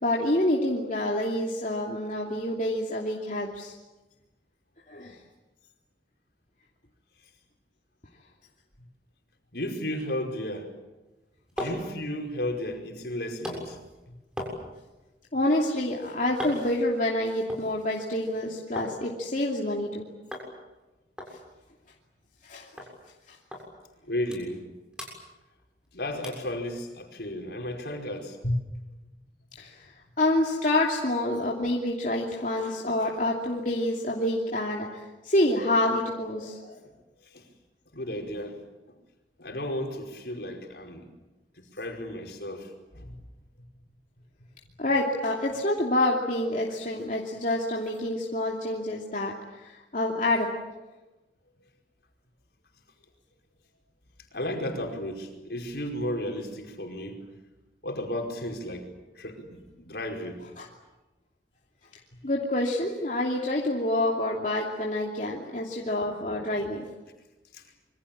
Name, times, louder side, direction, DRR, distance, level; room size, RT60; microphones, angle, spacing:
voice 1, 0.0-3.7 4.9-5.1 11.6-11.7 15.3-20.1 22.4-22.7 29.6-29.8 30.2-36.7 44.8-49.3 49.6-50.5 60.6-60.7 62.2-66.8, left 1 dB, 45° left, -2 dB, 2.8 m, -27 dB
voice 2, 9.5-10.7 11.6-13.8 14.1-14.2 24.1-24.6 25.9-28.8 37.3-37.4 37.9-38.6 38.9-39.0 39.4-41.1 41.6-43.2 54.3-57.2 57.8-58.9 59.1-60.4 67.5-67.6, left 1 dB, 65° left, 3 dB, 5.1 m, -33 dB
sound 1, 11.1-19.0 19.3-19.9 20.3-20.5 20.8-20.9 21.2-22.5 22.8-22.9 23.5-23.6 24.0-24.7 24.9-25.9 26.2-26.5 27.0-27.1, left 1 dB, 5° right, 7.0 m, -40 dB
27.0 x 24.0 x 8.8 m, 1.1 s
head